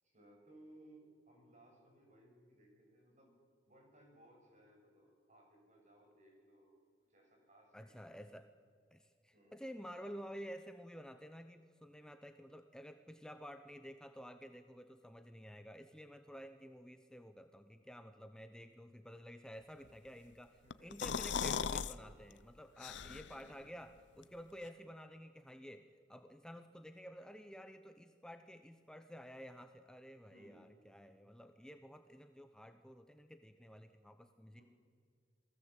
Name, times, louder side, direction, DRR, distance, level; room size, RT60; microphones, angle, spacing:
voice 1, 0.0-3.3 3.7-8.2 9.3-9.6 20.6-21.0 30.3-30.7 34.6-34.7, right 1 dB, 40° right, 1 dB, 7.2 m, -63 dB
voice 2, 7.7-8.5 8.9-34.6, equal, 5° left, 8 dB, 0.8 m, -52 dB
sound 1, 20.7-21.9 22.3-22.4 22.8-23.5, left 6 dB, 75° left, 0.7 m, -38 dB
28.0 x 19.0 x 8.2 m, 2.2 s
head